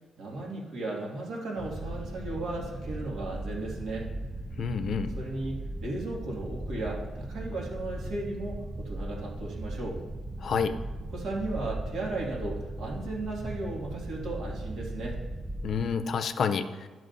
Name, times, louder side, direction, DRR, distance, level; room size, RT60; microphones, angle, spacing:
voice 1, 0.2-4.1 5.2-10.0 11.1-15.2, right 2 dB, 75° right, -2 dB, 2.1 m, -35 dB
sound 1, 1.6-15.9, right 1 dB, 20° right, 0.5 m, -38 dB
voice 2, 4.6-5.1 10.4-10.7 15.6-16.9, left 6 dB, 60° left, 10 dB, 0.5 m, -29 dB
12.0 x 6.0 x 2.6 m, 1.4 s
cardioid pair, 90°, 0 cm